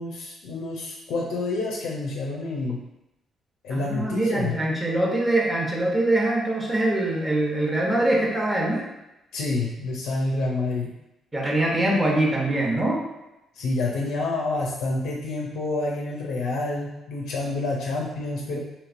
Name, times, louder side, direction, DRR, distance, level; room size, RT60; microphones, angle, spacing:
voice 1, 0.0-2.8 3.6-4.6 9.3-10.9 13.5-18.6, left 2 dB, 90° left, -2 dB, 0.4 m, -28 dB
voice 2, 3.7-8.8 11.3-13.0, right 1 dB, 15° right, -2 dB, 0.8 m, -23 dB
3.1 x 2.8 x 2.5 m, 0.93 s
cardioid pair, 90°, 0 cm